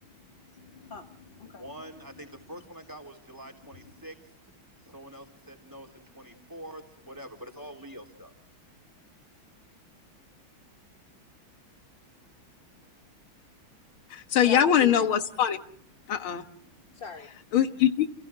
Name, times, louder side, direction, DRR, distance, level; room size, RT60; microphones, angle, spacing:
voice 1, 0.0-1.6 14.5-14.9 16.9-17.3, left 4 dB, 35° left, 1.0 m, -42 dB
voice 2, 1.4-4.2 4.8-8.3, right 1 dB, 10° right, 4.0 m, -45 dB
voice 3, 14.1-15.6 16.1-16.4 17.5-18.1, left 9 dB, 85° left, 2.1 m, -22 dB
30.0 x 29.5 x 3.7 m
omnidirectional pair, 2.2 m